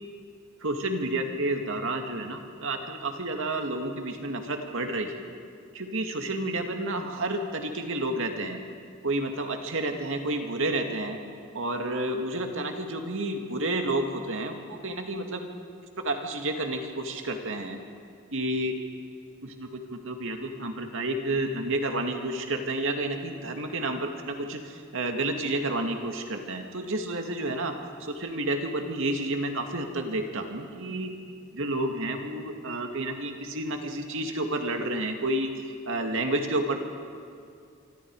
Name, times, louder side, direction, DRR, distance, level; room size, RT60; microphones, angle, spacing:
voice 1, 0.6-5.2 5.7-8.6 9.0-11.2 11.5-15.5 16.0-17.8 18.3-18.8 19.4-31.1 31.5-36.8, right 2 dB, 65° right, 4 dB, 2.3 m, -30 dB
25.5 x 25.0 x 4.9 m, 2.4 s
head